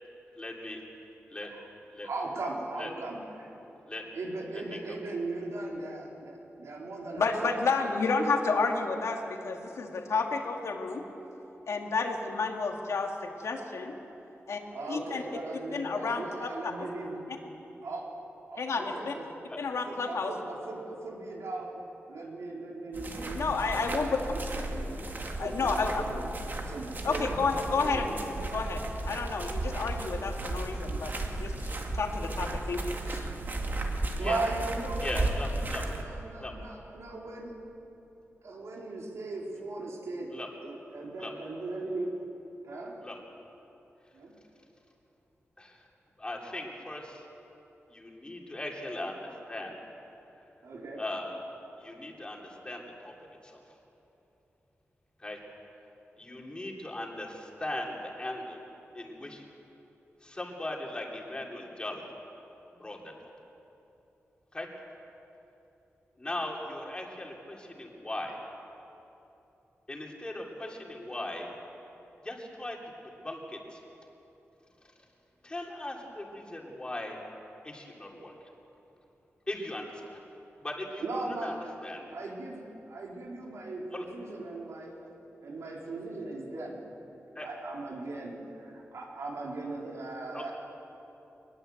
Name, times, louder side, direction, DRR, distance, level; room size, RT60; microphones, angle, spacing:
voice 1, 0.4-0.8 1.3-1.5 2.0-2.1 2.8-2.9 3.9-4.0 4.6-4.8 34.2-34.4 35.0-35.8 36.4-36.6 40.3-40.5 41.2-41.3 43.0-43.2 45.6-45.9 46.2-47.2 47.9-49.9 51.0-51.4 51.8-53.1 53.4-53.6 55.2-55.4 56.2-58.7 58.9-59.4 60.2-62.0 62.7-63.3 64.5-64.7 66.2-68.4 69.9-71.5 72.2-72.8 73.2-73.8 75.4-77.2 77.6-78.5 79.5-80.2 80.6-81.0 81.4-81.5 81.8-82.1 83.9-84.0 87.3-87.5 90.3-90.5, left 1 dB, 20° left, 0 dB, 3.1 m, -38 dB
voice 2, 2.0-3.5 4.1-7.6 14.7-17.2 17.8-18.1 18.5-19.3 19.9-21.8 22.1-23.4 23.8-25.0 25.4-27.4 27.8-28.3 34.2-37.6 38.4-40.3 40.6-42.2 42.6-42.9 44.1-44.3 50.6-51.0 81.0-81.7 82.1-85.1 85.4-86.7 87.4-90.5, right 2 dB, 85° right, -2 dB, 4.1 m, -38 dB
voice 3, 7.2-11.0 11.7-13.9 14.5-14.6 14.9-15.2 15.7-16.9 18.6-19.1 19.6-20.3 23.3-24.2 25.4-26.0 27.0-28.1 28.5-31.1 31.4-33.3, left 4 dB, 80° left, 2 dB, 2.4 m, -31 dB
sound 1, 22.9-36.0, right 2 dB, 45° right, 2.2 m, -34 dB
23.0 x 20.5 x 8.0 m, 3.0 s
wide cardioid pair, 160°, 5 cm